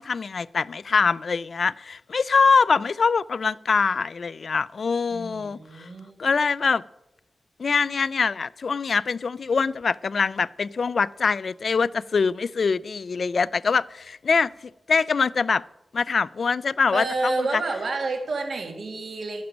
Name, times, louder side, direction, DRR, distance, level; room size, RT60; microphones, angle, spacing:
voice 1, 0.0-5.9 6.2-6.8 7.6-14.5 14.9-15.6 15.9-17.6, left 5 dB, 60° left, 0.3 m, -23 dB
voice 2, 5.1-6.1 16.9-19.4, right 3 dB, 75° right, 1.8 m, -29 dB
13.0 x 10.5 x 5.2 m
wide cardioid pair, 150°, 0 cm